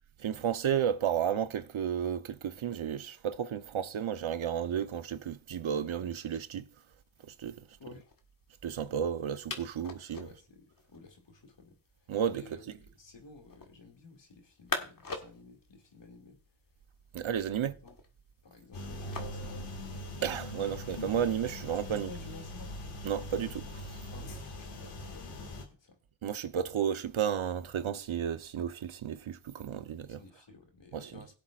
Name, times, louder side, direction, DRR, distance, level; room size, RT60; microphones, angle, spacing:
voice 1, 0.2-6.7 7.4-7.6 8.6-10.3 12.1-12.4 17.1-17.7 20.2-22.1 23.0-23.8 26.2-30.2 30.9-31.1, right 8 dB, 70° right, 1.0 m, -32 dB
sound 1, 5.8-21.3, left 4 dB, 40° left, 1.8 m, -47 dB
voice 2, 10.1-16.4 17.5-18.0 18.4-19.9 21.8-22.8 24.1-26.0 30.1-31.3, left 4 dB, 60° left, 2.5 m, -53 dB
sound 2, 18.7-25.6, left 1 dB, 85° left, 2.2 m, -41 dB
17.5 x 7.8 x 2.5 m
cardioid pair, 55°, 50 cm